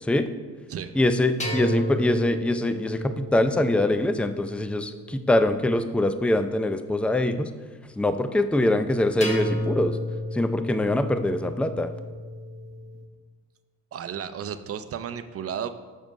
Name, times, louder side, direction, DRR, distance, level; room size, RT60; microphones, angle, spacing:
voice 1, 0.9-7.5 8.0-10.0 10.3-11.9, left 1 dB, 5° left, 10 dB, 0.5 m, -23 dB
sound 1, 1.4-5.7 9.2-13.1, left 1 dB, 25° left, 1.5 m, -33 dB
voice 2, 13.9-15.7, right 8 dB, 50° right, 11 dB, 0.6 m, -33 dB
7.3 x 6.3 x 5.3 m, 1.4 s
cardioid pair, 90°, 30 cm